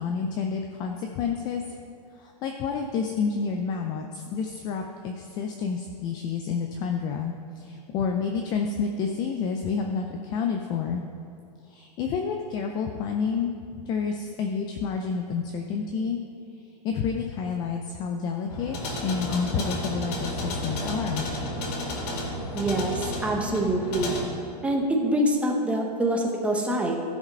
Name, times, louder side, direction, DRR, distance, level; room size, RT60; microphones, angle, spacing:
voice 1, 0.0-1.6 2.2-11.0 11.7-13.5 13.9-16.2 16.8-18.8 19.0-21.3, left 5 dB, 20° left, 3 dB, 0.4 m, -29 dB
sound 1, 18.5-24.2, left 1 dB, 65° left, 2.3 m, -32 dB
voice 2, 22.5-24.1 24.6-27.0, right 1 dB, 5° right, 1 dB, 0.8 m, -25 dB
14.0 x 5.0 x 5.3 m, 2.5 s
hypercardioid pair, 155°, 21 cm